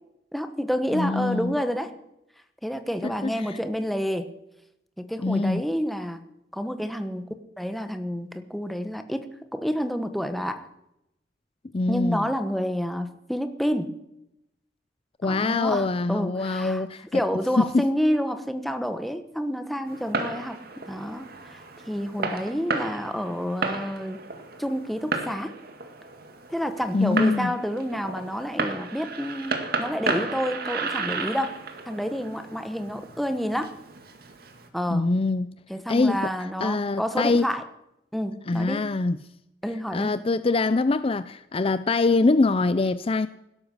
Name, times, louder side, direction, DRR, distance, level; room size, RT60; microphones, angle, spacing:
voice 1, 0.3-1.9 2.6-4.3 5.0-6.2 6.5-7.2 7.6-10.7 11.9-13.9 15.2-16.8 17.1-20.6 20.9-21.6 21.9-24.2 24.6-25.5 26.5-31.5 31.9-33.7 34.7-35.1 35.7-37.6 38.1-38.9 39.6-40.1, equal, ahead, 1.2 m, -29 dB
voice 2, 0.9-1.6 3.0-3.6 5.2-5.7 11.7-12.3 15.2-17.2 17.6-17.9 26.9-27.5 34.9-35.5 35.9-37.5 38.5-39.2 39.9-43.3, left 3 dB, 35° left, 0.5 m, -24 dB
Fireworks, 19.9-34.7, right 3 dB, 60° right, 2.1 m, -33 dB
16.5 x 13.0 x 6.4 m
head